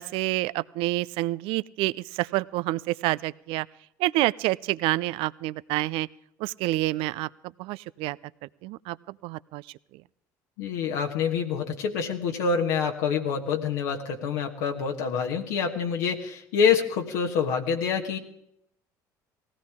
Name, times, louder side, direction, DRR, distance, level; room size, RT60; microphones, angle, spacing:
voice 1, 0.0-3.7 4.0-6.1 6.4-7.3 7.6-8.2 8.6-9.0 9.2-9.6, right 18 dB, 70° right, 20 dB, 0.4 m, -28 dB
voice 2, 10.6-18.2, left 6 dB, 80° left, 2 dB, 1.4 m, -26 dB
18.5 x 16.5 x 3.6 m, 0.75 s
hypercardioid pair, 65°, 10 cm